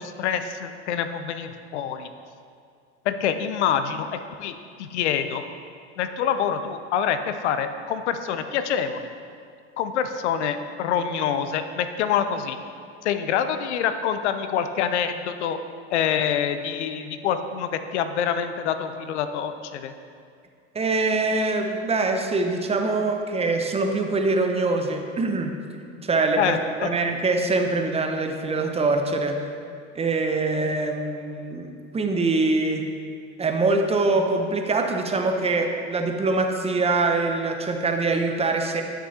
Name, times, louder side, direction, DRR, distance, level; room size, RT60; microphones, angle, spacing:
voice 1, 0.0-2.1 3.1-5.4 6.0-9.1 9.8-12.6 13.0-15.6 15.9-19.9 26.4-26.9, left 8 dB, 80° left, 9 dB, 0.6 m, -26 dB
voice 2, 20.7-25.5 26.0-29.5 29.9-32.9 33.4-38.8, right 3 dB, 20° right, 4 dB, 0.7 m, -24 dB
12.5 x 6.2 x 2.8 m, 2.3 s
hypercardioid pair, 90°, 34 cm